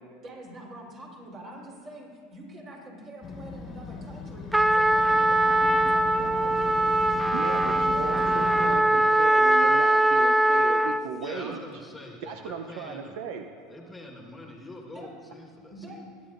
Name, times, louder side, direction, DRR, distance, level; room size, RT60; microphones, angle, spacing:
voice 1, 0.2-7.0 7.4-8.6 14.9-15.1 15.7-16.0, right 1 dB, 40° right, -2 dB, 3.7 m, -44 dB
Motorcycle, 3.2-8.8, left 3 dB, 40° left, 1.3 m, -37 dB
Trumpet, 4.5-11.1, right 1 dB, 5° right, 0.3 m, -22 dB
voice 2, 7.3-11.6 12.2-13.5, right 6 dB, 70° right, 6 dB, 0.6 m, -36 dB
voice 3, 9.2-9.8 11.2-13.2 13.7-16.0, left 2 dB, 10° left, 0 dB, 1.5 m, -43 dB
23.5 x 10.5 x 2.6 m, 2.2 s
hypercardioid pair, 95°, 0 cm